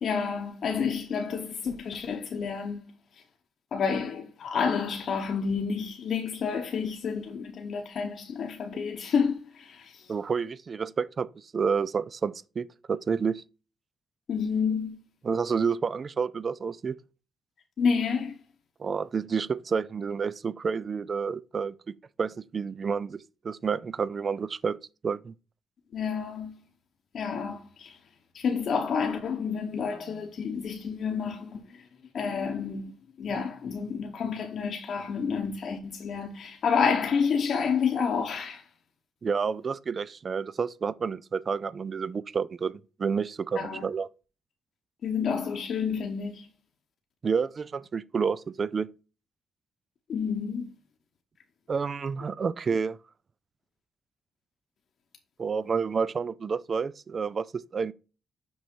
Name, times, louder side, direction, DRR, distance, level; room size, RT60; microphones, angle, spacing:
voice 1, 0.0-2.8 3.7-10.1 14.3-15.0 17.8-18.3 25.9-26.5 27.1-28.0 28.3-31.6 32.1-32.9 33.2-38.6 43.6-43.8 45.0-46.5 50.1-50.7, left 6 dB, 65° left, 1.0 m, -29 dB
voice 2, 10.1-13.4 15.2-17.0 18.8-21.7 22.2-24.8 25.0-25.3 39.2-44.1 47.2-48.9 51.7-53.0 55.4-57.9, right 5 dB, 45° right, 0.4 m, -29 dB
6.3 x 4.8 x 4.4 m
cardioid pair, 85°, 0 cm